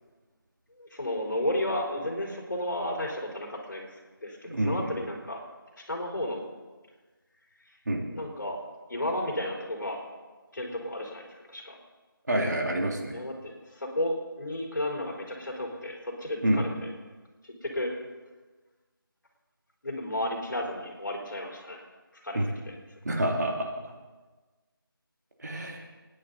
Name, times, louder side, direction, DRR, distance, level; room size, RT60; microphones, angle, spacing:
voice 1, 0.7-5.4 5.8-6.4 7.6-7.8 8.1-10.0 10.5-11.8 13.1-16.9 17.4-17.9 19.8-21.8 22.1-23.2, left 1 dB, 55° left, -1 dB, 4.6 m, -33 dB
voice 2, 4.4-4.9 7.9-8.0 12.3-13.1 16.4-16.6 22.3-22.4 23.0-23.7 25.4-25.8, right 1 dB, 50° right, 0 dB, 2.6 m, -27 dB
28.5 x 10.0 x 4.1 m, 1.3 s
figure-of-eight pair, 175°, 12 cm